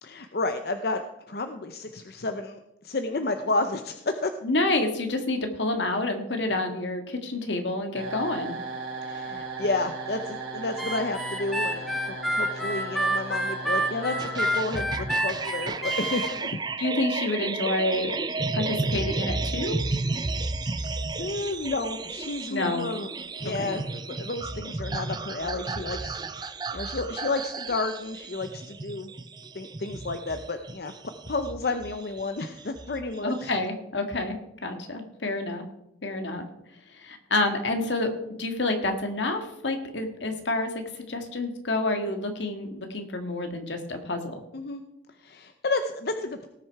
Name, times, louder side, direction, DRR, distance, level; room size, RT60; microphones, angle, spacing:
voice 1, 0.0-1.0 1.3-4.3 9.0-12.0 12.3-16.6 20.8-23.1 23.4-29.1 29.5-30.9 31.3-33.5 44.5-44.8 45.2-46.5, left 3 dB, 55° left, 7 dB, 0.7 m, -31 dB
voice 2, 4.4-8.5 16.8-18.2 18.5-19.8 22.5-22.9 23.6-23.7 33.2-34.4 34.6-35.6 36.0-36.4 36.9-38.1 38.4-44.4, left 2 dB, 80° left, 5 dB, 1.7 m, -28 dB
sound 1, 7.9-16.9, right 2 dB, 85° right, 3.3 m, -37 dB
Harmonica, 10.8-16.3, right 1 dB, ahead, 1.2 m, -28 dB
sound 2, 14.2-33.7, right 3 dB, 20° right, 0.4 m, -33 dB
18.0 x 6.3 x 4.7 m, 0.84 s
head